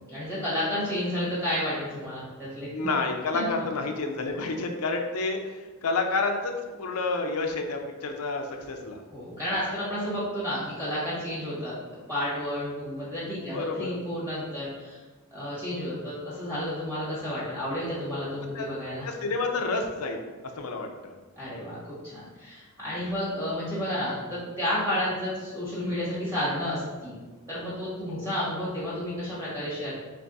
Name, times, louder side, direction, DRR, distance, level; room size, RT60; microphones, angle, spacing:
voice 1, 0.1-2.9 3.3-3.4 9.1-15.0 15.3-19.1 21.4-27.2 27.5-30.0, left 1 dB, 15° right, -10 dB, 1.5 m, -31 dB
voice 2, 2.7-9.0 13.5-14.0 18.4-18.7 19.0-20.3 20.6-21.1 28.1-28.3, left 3 dB, 90° left, 4 dB, 0.6 m, -30 dB
3.5 x 3.3 x 3.9 m, 1.3 s
head